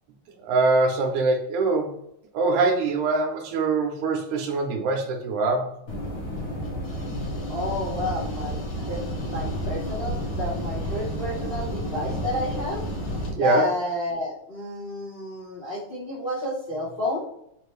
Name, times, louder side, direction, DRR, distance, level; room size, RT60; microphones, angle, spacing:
voice 1, 0.4-1.9 2.3-5.7 13.4-13.7, right 3 dB, 80° right, 3 dB, 2.2 m, -23 dB
sound 1, 5.9-13.3, equal, 55° left, 1.2 m, -31 dB
voice 2, 7.5-8.6 8.9-12.8 13.3-17.2, left 1 dB, 75° left, -8 dB, 0.5 m, -30 dB
5.2 x 2.7 x 3.1 m, 0.75 s
omnidirectional pair, 3.5 m